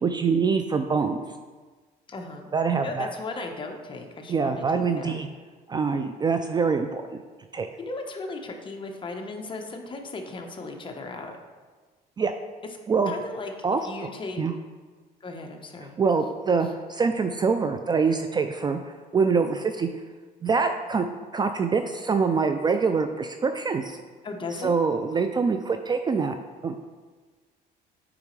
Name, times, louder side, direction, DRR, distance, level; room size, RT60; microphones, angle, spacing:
voice 1, 0.0-1.3 2.5-3.1 4.3-5.3 5.7-7.0 7.5-7.7 12.2-12.3 12.9-13.1 13.6-13.8 14.4-14.5 16.0-18.8 19.1-19.9 20.4-21.1 21.3-24.0 24.6-26.3 26.6-26.8, right 5 dB, 25° right, 7 dB, 0.3 m, -24 dB
voice 2, 2.1-2.5 2.8-4.6 5.0-5.1 7.8-11.3 13.0-14.4 15.2-16.0 24.2-24.8, left 3 dB, 30° left, 3 dB, 1.0 m, -36 dB
8.6 x 4.9 x 3.2 m, 1.4 s
cardioid pair, 110°, 17 cm